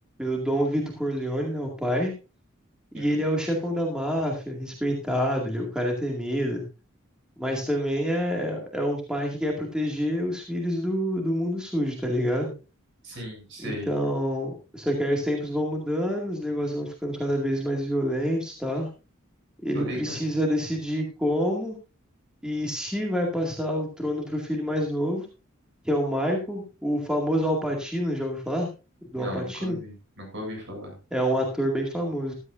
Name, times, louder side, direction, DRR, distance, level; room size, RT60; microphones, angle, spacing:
voice 1, 0.2-2.1 2.9-6.6 7.4-12.5 13.6-18.9 19.6-21.8 22.4-25.3 25.8-28.7 29.1-29.8 31.1-32.3, equal, 5° right, 0 dB, 2.2 m, -27 dB
voice 2, 13.0-13.9 19.7-20.2 29.1-31.0, equal, 55° right, 1 dB, 7.5 m, -36 dB
14.5 x 13.0 x 2.6 m, 0.30 s
head